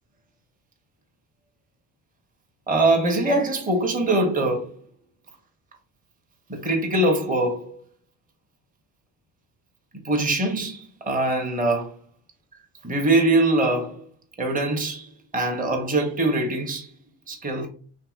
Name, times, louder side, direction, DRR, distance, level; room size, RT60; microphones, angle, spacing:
voice 1, 2.7-4.7 6.5-7.8 10.0-11.9 12.8-14.0 14.4-16.9 17.3-17.7, right 2 dB, 20° right, 0.8 m, -23 dB
2.8 x 2.7 x 2.4 m
supercardioid pair, 60°, 46 cm